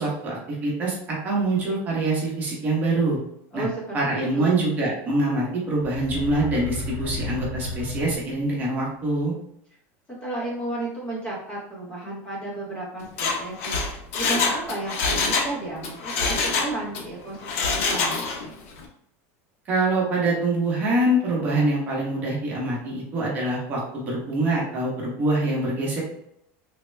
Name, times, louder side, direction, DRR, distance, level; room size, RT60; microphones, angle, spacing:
voice 1, 0.0-3.2 3.5-3.7 3.9-9.3 19.7-26.0, right 2 dB, 20° right, -4 dB, 0.8 m, -24 dB
voice 2, 3.5-4.6 10.2-18.2, right 2 dB, 15° left, -5 dB, 0.7 m, -33 dB
sound 1, 5.8-8.6, left 2 dB, 35° left, 1.2 m, -32 dB
Mechanisms, 13.0-15.5 15.8-17.0 17.4-18.5 18.8-18.9, left 4 dB, 65° left, 0.6 m, -25 dB
3.4 x 2.1 x 3.1 m, 0.74 s
supercardioid pair, 180°, 8 cm